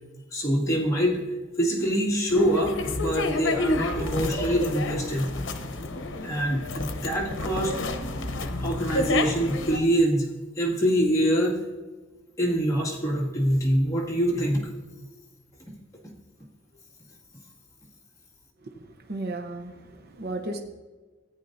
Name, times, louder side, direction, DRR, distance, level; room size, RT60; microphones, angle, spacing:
voice 1, 0.3-1.2 1.6-5.4 6.2-7.7 8.6-10.3 10.6-11.6 12.4-14.6, equal, 15° left, -5 dB, 2.0 m, -25 dB
sound 1, 2.3-9.8, left 2 dB, 85° left, 0.8 m, -30 dB
voice 2, 19.1-20.6, right 2 dB, 55° right, 4 dB, 0.7 m, -34 dB
14.5 x 9.2 x 2.6 m, 1.3 s
head